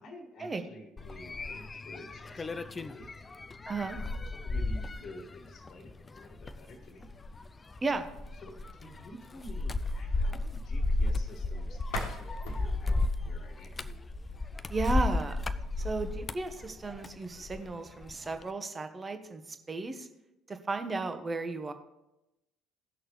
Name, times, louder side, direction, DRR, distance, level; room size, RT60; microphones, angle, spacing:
voice 1, 0.0-3.1 3.9-7.1 8.4-13.8, left 1 dB, 40° left, 5 dB, 1.6 m, -50 dB
sound 1, 1.0-17.7 18.0-18.5, left 2 dB, 25° left, 0.4 m, -34 dB
voice 2, 3.7-4.0 7.8-8.1 14.7-15.4 15.8-20.1 20.5-21.7, right 3 dB, 25° right, 7 dB, 1.1 m, -34 dB
sound 2, 11.8-14.7, left 1 dB, 65° left, 1.4 m, -41 dB
17.0 x 6.3 x 3.1 m, 0.91 s
figure-of-eight pair, 55°, 0 cm